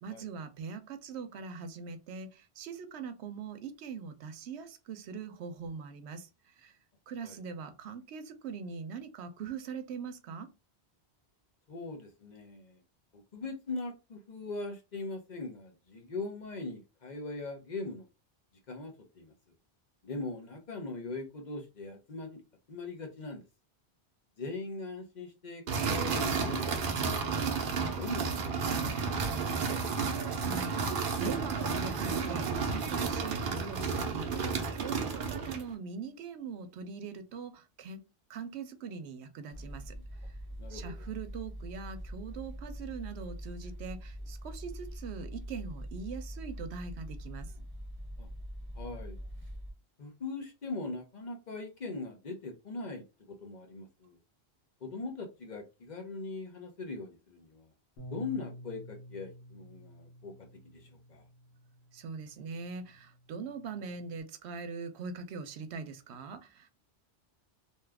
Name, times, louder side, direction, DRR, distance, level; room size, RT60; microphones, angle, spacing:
voice 1, 0.0-6.7 7.1-10.5 30.4-34.4 34.7-38.0 38.3-39.9 40.7-47.5 61.9-66.7, right 5 dB, 90° right, 0.9 m, -42 dB
voice 2, 11.7-12.8 13.1-18.1 18.7-19.3 20.0-22.4 22.7-23.4 24.4-29.6 40.6-41.1 48.2-48.3 48.7-49.2 50.0-54.2 54.8-57.7 58.1-60.3 60.7-61.2, left 3 dB, 50° left, 0.8 m, -41 dB
sound 1, 25.7-35.7, right 5 dB, 60° right, 0.8 m, -32 dB
sound 2, 39.5-49.7, equal, 10° right, 0.8 m, -43 dB
Bass guitar, 58.0-64.2, equal, 80° left, 1.2 m, -51 dB
2.7 x 2.4 x 3.3 m
omnidirectional pair, 1.1 m